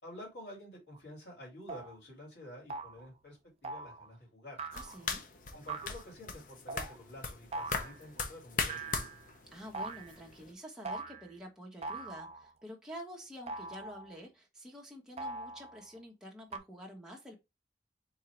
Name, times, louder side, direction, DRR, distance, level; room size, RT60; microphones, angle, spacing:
voice 1, 0.0-4.6 5.5-9.2, left 1 dB, 70° left, 2.5 m, -50 dB
sound 1, 0.9-1.0 1.7-2.0 2.7-3.1 3.6-4.1 4.6-5.1 5.7-6.0 6.7-7.0 7.5-8.0 8.7-9.3 9.7-10.2 10.8-11.3 11.8-12.5 13.5-14.1 15.2-15.9 16.5-16.6, right 3 dB, 35° right, 0.4 m, -42 dB
sound 2, 4.7-10.5, left 4 dB, 50° left, 0.7 m, -40 dB
voice 2, 4.7-5.2 9.5-17.3, equal, 5° right, 1.1 m, -48 dB
3.9 x 2.8 x 4.4 m
head